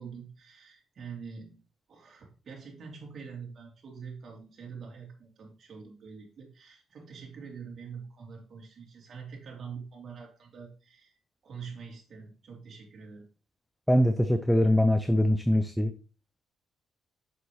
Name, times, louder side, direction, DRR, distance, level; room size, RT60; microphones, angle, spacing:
voice 1, 0.0-1.6 1.9-11.1 11.4-13.2, right 6 dB, 55° right, -1 dB, 3.1 m, -45 dB
voice 2, 13.9-15.9, left 1 dB, 5° left, 9 dB, 0.6 m, -23 dB
7.0 x 6.6 x 3.2 m, 0.35 s
cardioid pair, 90°, 0 cm